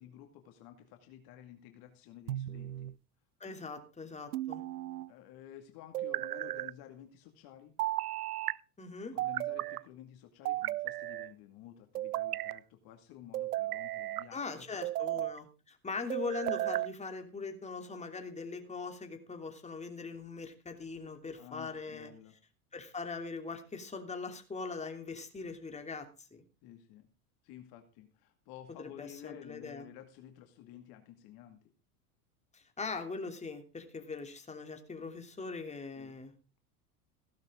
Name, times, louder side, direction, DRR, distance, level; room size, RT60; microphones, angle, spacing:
voice 1, 0.0-2.9 5.1-7.8 9.1-14.9 15.2-15.3 21.4-22.4 26.6-27.1 27.4-31.7 36.0-36.1, left 11 dB, 55° left, 5 dB, 2.3 m, -52 dB
sound 1, 2.3-3.0 4.3-5.1 5.9-6.7 7.8-8.6 9.2-9.8 10.5-11.3 12.0-12.6 13.3-14.3 14.8-15.4 16.1-16.9, right 15 dB, 90° right, 0.6 m, -35 dB
voice 2, 3.4-4.6 8.8-9.1 14.3-22.1 22.7-26.4 28.8-29.8 32.5-36.3, left 4 dB, 15° left, 5 dB, 3.1 m, -41 dB
16.0 x 12.0 x 3.8 m, 0.32 s
hypercardioid pair, 95°, 44 cm